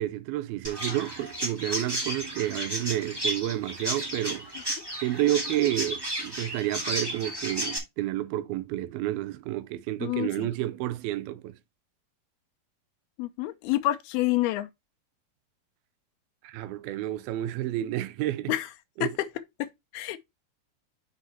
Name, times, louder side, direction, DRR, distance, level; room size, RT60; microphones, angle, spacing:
voice 1, 0.0-4.5 5.0-11.6 16.4-18.5 19.0-19.2, right 14 dB, 85° right, 2.5 m, -30 dB
Chirp tweet, 0.6-7.8, right 1 dB, 15° right, 0.7 m, -33 dB
voice 2, 10.0-10.5 13.2-14.7 18.5-18.7 19.0-19.3 19.6-19.7 19.9-20.2, left 15 dB, 85° left, 2.7 m, -28 dB
7.5 x 6.2 x 2.8 m
omnidirectional pair, 4.4 m